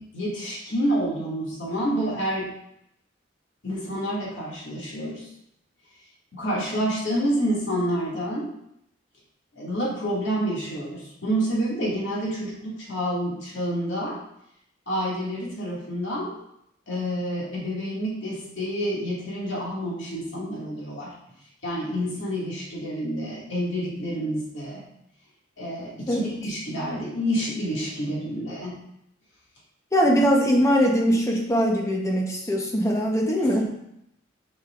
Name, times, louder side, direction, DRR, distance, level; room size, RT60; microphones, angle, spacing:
voice 1, 0.0-2.5 3.6-5.3 6.3-8.5 9.5-14.2 14.9-16.4 16.9-21.1 21.6-24.8 25.6-28.8 33.4-33.6, equal, 65° left, -6 dB, 2.3 m, -28 dB
voice 2, 29.9-33.6, equal, 15° left, 0 dB, 1.0 m, -21 dB
6.6 x 6.5 x 2.5 m, 0.79 s
head